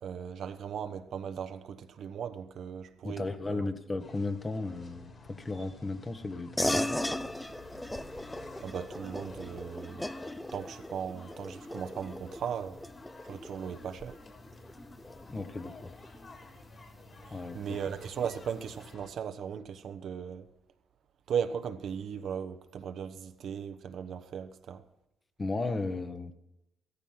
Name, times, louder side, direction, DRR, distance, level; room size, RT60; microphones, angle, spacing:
voice 1, 0.0-3.7 8.6-10.1 10.5-12.8 13.2-14.2 17.3-20.5 21.3-24.8, right 7 dB, 65° right, 1.1 m, -37 dB
voice 2, 3.0-6.8 15.3-15.9 17.3-17.8 25.4-26.3, left 3 dB, 25° left, 1.3 m, -35 dB
sound 1, 4.0-19.1, left 2 dB, 40° left, 3.4 m, -52 dB
sound 2, 6.6-16.4, left 1 dB, 10° left, 0.6 m, -37 dB
14.5 x 14.0 x 5.8 m
cardioid pair, 90°, 0 cm